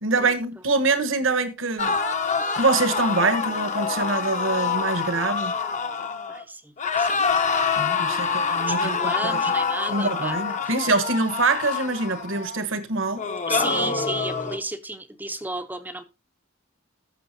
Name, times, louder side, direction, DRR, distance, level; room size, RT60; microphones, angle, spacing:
voice 1, 0.0-2.0 2.5-5.5 7.8-9.4 9.9-13.2, right 3 dB, 60° right, 1.2 m, -24 dB
sound 1, 1.8-6.4 6.8-12.6 13.2-14.6, left 5 dB, 35° left, 0.8 m, -26 dB
voice 2, 6.3-7.2 7.9-10.4 10.6-11.0 13.5-16.0, right 2 dB, 10° right, 0.6 m, -33 dB
14.0 x 6.3 x 2.7 m
head